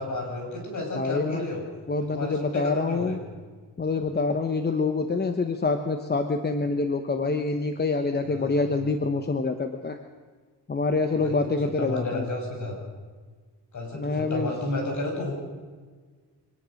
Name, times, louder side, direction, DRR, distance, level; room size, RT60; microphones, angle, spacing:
voice 1, 0.0-1.6 2.1-3.1 8.3-8.7 11.2-12.8 13.7-15.4, left 2 dB, 45° left, 1 dB, 6.6 m, -32 dB
voice 2, 0.9-1.5 1.9-3.2 3.8-10.0 10.7-12.2 13.9-14.5, left 3 dB, 25° left, 7 dB, 1.1 m, -26 dB
24.5 x 19.0 x 6.5 m, 1.5 s
cardioid pair, 145°, 42 cm